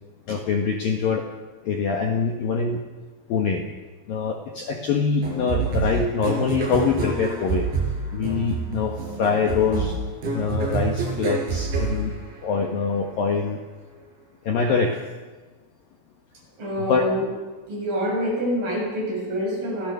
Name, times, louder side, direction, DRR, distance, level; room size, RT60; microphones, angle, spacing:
voice 1, 0.3-1.2 1.6-2.8 3.3-3.6 4.1-7.7 8.1-10.0 10.3-12.1 12.4-13.6 14.4-15.0 16.9-17.0, left 5 dB, 60° left, 2 dB, 2.6 m, -24 dB
sound 1, 5.2-12.8, right 4 dB, 60° right, 7.3 m, -27 dB
voice 2, 16.6-17.3 17.7-19.9, equal, 40° right, -2 dB, 8.9 m, -26 dB
29.5 x 16.5 x 7.0 m, 1.3 s
omnidirectional pair, 6.0 m